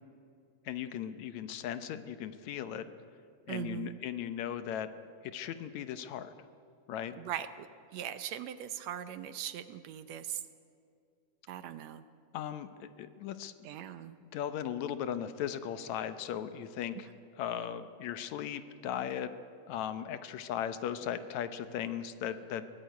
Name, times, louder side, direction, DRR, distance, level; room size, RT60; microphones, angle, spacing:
voice 1, 0.7-2.9 3.5-4.9 5.3-6.3 6.9-7.2 12.3-13.5 14.3-17.1 17.4-19.4 19.7-22.7, left 9 dB, 75° left, 11 dB, 2.1 m, -37 dB
voice 2, 3.5-4.0 7.2-10.4 11.5-12.0 13.6-14.1, right 11 dB, 75° right, 12 dB, 1.8 m, -40 dB
23.0 x 17.0 x 9.3 m, 2.4 s
omnidirectional pair, 3.4 m